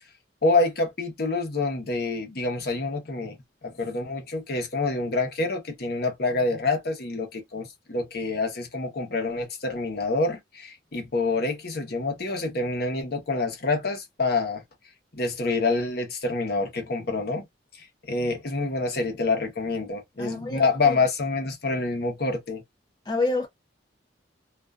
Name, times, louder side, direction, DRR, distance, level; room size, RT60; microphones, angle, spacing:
voice 1, 0.4-3.4 3.6-14.6 15.1-17.5 17.8-22.6, left 3 dB, 60° left, 0.9 m, -27 dB
voice 2, 20.2-21.0 23.1-23.5, left 3 dB, 25° left, 0.5 m, -28 dB
2.5 x 2.3 x 2.3 m
head